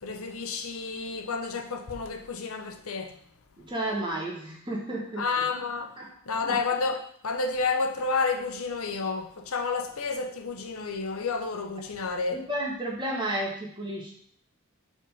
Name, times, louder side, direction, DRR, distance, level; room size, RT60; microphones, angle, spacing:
voice 1, 0.0-3.2 5.2-5.9 6.3-7.0 7.2-12.4, left 4 dB, 75° left, 0.7 m, -30 dB
voice 2, 3.6-5.4 6.0-6.1 6.5-6.6 12.3-14.1, right 1 dB, 20° right, 1.2 m, -32 dB
5.1 x 3.6 x 5.5 m
head